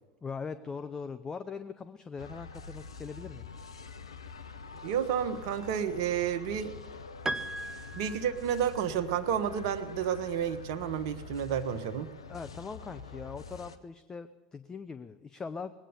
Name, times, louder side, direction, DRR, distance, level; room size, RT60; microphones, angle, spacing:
voice 1, 0.2-3.5 12.3-15.7, left 5 dB, 25° left, 11 dB, 0.6 m, -41 dB
sound 1, 2.2-13.8, left 5 dB, 85° left, 0.7 m, -46 dB
voice 2, 4.8-6.7 7.9-12.1, right 9 dB, 60° right, 10 dB, 1.0 m, -31 dB
Piano, 7.3-8.9, right 2 dB, 20° right, 0.6 m, -38 dB
20.5 x 8.9 x 6.9 m, 1.3 s
figure-of-eight pair, 75°, 3 cm